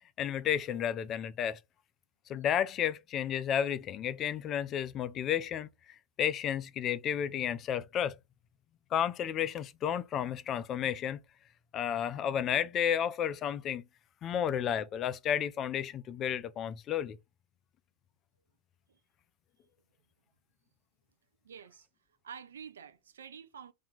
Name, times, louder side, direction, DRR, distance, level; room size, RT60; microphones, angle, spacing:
voice 1, 0.2-1.6 2.3-5.7 6.2-8.2 8.9-11.2 11.7-13.8 14.2-17.2, left 9 dB, 30° left, 0.4 m, -32 dB
voice 2, 21.4-21.9 22.2-23.7, right 7 dB, 65° right, 0.5 m, -48 dB
2.7 x 2.6 x 4.2 m
figure-of-eight pair, 90°, 0 cm